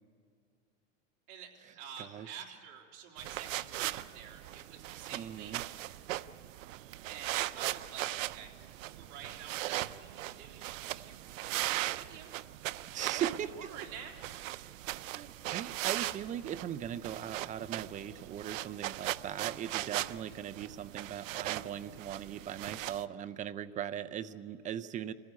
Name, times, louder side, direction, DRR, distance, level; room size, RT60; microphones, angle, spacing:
voice 1, 1.8-5.7 7.1-8.5 8.8-12.3 13.0-14.1, right 8 dB, 50° right, 1 dB, 3.4 m, -49 dB
sound 1, 3.2-23.0, right 16 dB, 90° right, 0.7 m, -39 dB
voice 2, 5.1-5.6 12.9-13.7 15.1-25.1, right 10 dB, 20° right, 12 dB, 0.5 m, -39 dB
26.0 x 15.5 x 9.4 m, 2.4 s
supercardioid pair, 135°, 38 cm